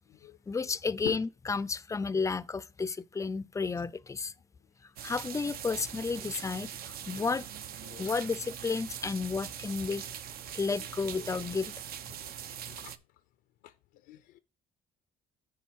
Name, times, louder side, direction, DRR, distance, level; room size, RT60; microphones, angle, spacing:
voice 1, 0.5-4.3 5.0-7.4 8.0-10.0 10.5-11.7, left 4 dB, 20° left, 0.4 m, -32 dB
sound 1, 5.0-13.0, right 9 dB, 65° right, 0.7 m, -42 dB
voice 2, 7.8-8.2 12.1-12.2 12.6-12.9 13.6-13.7 14.1-14.4, left 15 dB, 85° left, 0.6 m, -44 dB
9.3 x 4.6 x 4.6 m
cardioid pair, 110°, 17 cm